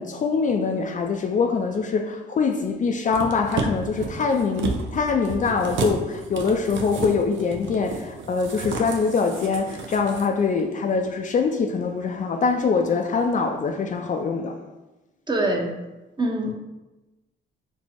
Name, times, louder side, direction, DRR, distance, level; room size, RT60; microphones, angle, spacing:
voice 1, 0.0-14.5, left 5 dB, 40° left, 4 dB, 0.4 m, -24 dB
sound 1, 3.1-10.3 10.6-10.7, right 4 dB, 70° right, 0.6 m, -32 dB
voice 2, 15.3-15.7 16.2-16.5, right 1 dB, 25° right, 1 dB, 0.8 m, -23 dB
4.3 x 2.0 x 4.5 m, 1.1 s
cardioid pair, 90°, 20 cm